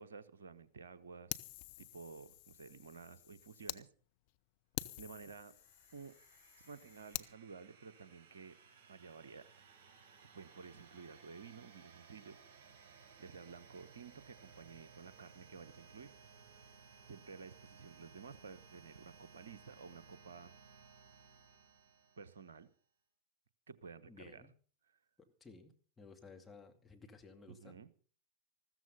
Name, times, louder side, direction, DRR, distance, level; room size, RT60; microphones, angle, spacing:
voice 1, 0.0-1.4 1.8-3.9 5.0-5.6 5.9-6.1 6.6-8.6 8.9-9.5 10.3-12.4 12.7-12.8 13.2-16.1 17.1-20.5 22.2-22.7 23.7-24.5 24.9-25.0 27.5-27.9, right 5 dB, 70° right, 17 dB, 1.0 m, -53 dB
Fire, 1.3-3.8 4.3-4.4 4.7-7.3, left 17 dB, 50° left, 0.7 m, -47 dB
sound 1, 5.1-22.7, right 5 dB, 45° right, 5.7 m, -61 dB
voice 2, 24.1-24.5 25.2-27.8, left 4 dB, 10° left, 2 dB, 2.4 m, -57 dB
14.5 x 13.5 x 5.5 m, 0.42 s
figure-of-eight pair, 90°, 0 cm